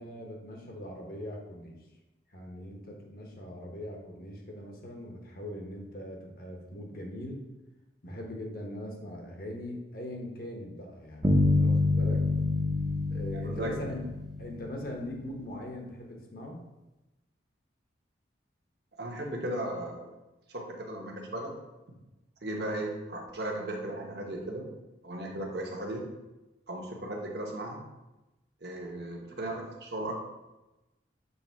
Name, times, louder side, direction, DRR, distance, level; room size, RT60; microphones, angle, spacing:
voice 1, 0.0-1.8 2.3-7.5 8.0-12.2 13.1-14.0 14.4-16.6, left 1 dB, 50° left, 1 dB, 1.1 m, -41 dB
sound 1, 11.2-15.2, left 2 dB, 20° right, 0.6 m, -27 dB
voice 2, 13.3-13.8 19.0-20.1 20.5-21.5 22.4-24.7 25.0-26.1 26.7-27.8 28.6-30.1, right 1 dB, 60° right, 0 dB, 1.1 m, -36 dB
6.9 x 3.3 x 4.5 m, 1.0 s
head